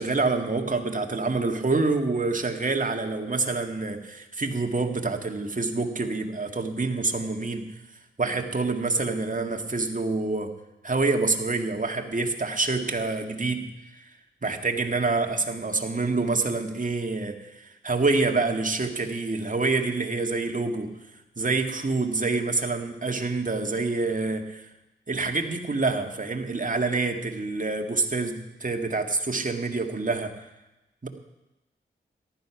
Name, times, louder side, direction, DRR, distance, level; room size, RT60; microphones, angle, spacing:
voice 1, 0.0-7.7 8.2-10.5 10.8-13.7 14.4-20.9 21.4-24.7 25.1-30.4 31.0-31.1, right 3 dB, 40° right, 4 dB, 2.0 m, -27 dB
14.5 x 11.5 x 5.9 m, 1.0 s
cardioid pair, 50°, 21 cm